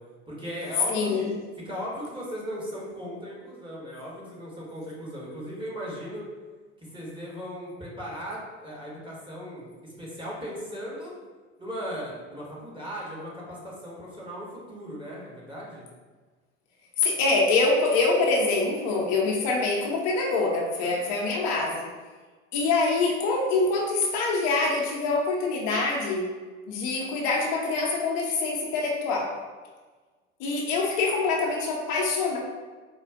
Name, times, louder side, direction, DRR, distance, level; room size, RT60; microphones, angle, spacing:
voice 1, 0.3-1.3 1.6-6.2 6.9-11.1 11.6-15.9, equal, 15° right, -5 dB, 1.5 m, -37 dB
voice 2, 0.9-1.3 17.0-21.9 22.5-26.3 26.7-29.3 30.4-32.4, left 3 dB, 60° left, -2 dB, 0.9 m, -25 dB
4.4 x 2.4 x 3.7 m, 1.4 s
hypercardioid pair, 70°, 35 cm